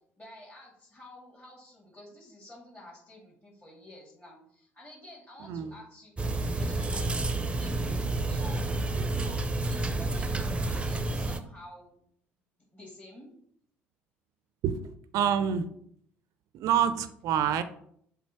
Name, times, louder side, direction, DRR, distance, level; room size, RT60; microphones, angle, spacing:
voice 1, 0.2-6.1 6.5-12.0 12.7-13.3, left 1 dB, 25° left, -6 dB, 2.6 m, -50 dB
voice 2, 5.4-5.8 14.6-15.7 16.5-17.6, right 8 dB, 60° right, 12 dB, 0.4 m, -27 dB
sound 1, 6.2-11.4, right 2 dB, 15° right, 0.7 m, -30 dB
7.2 x 3.6 x 4.5 m, 0.67 s
hypercardioid pair, 55°, 6 cm